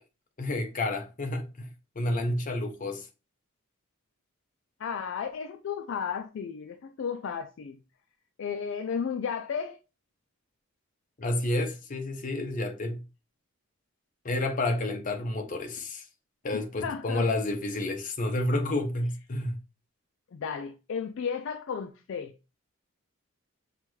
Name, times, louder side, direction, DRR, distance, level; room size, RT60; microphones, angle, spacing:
voice 1, 0.4-1.7 2.0-3.1 11.2-13.0 14.2-16.1 16.4-19.6, left 2 dB, 40° left, 0.7 m, -30 dB
voice 2, 4.8-7.8 8.4-9.8 16.5-17.3 20.3-22.3, left 6 dB, 60° left, 0.3 m, -34 dB
5.8 x 2.3 x 3.1 m
head